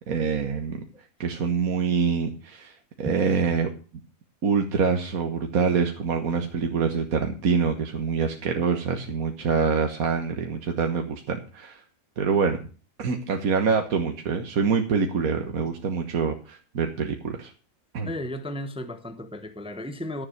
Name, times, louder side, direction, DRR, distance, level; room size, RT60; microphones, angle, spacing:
voice 1, 0.1-0.8 1.2-3.7 4.4-11.8 12.2-12.6 13.0-17.5 17.9-18.1, right 5 dB, 70° right, 1.7 m, -25 dB
voice 2, 18.0-20.3, left 1 dB, 5° right, 0.8 m, -34 dB
12.5 x 7.5 x 6.3 m
omnidirectional pair, 1.6 m